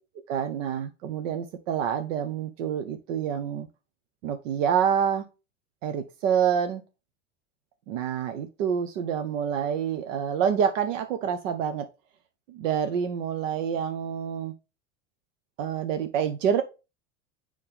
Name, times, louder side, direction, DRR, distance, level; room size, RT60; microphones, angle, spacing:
voice 1, 0.3-3.7 4.2-5.3 5.8-6.8 7.9-11.9 12.5-14.5 15.6-16.6, right 8 dB, 75° right, 1.0 m, -27 dB
9.7 x 3.4 x 3.5 m
supercardioid pair, 105°, 38 cm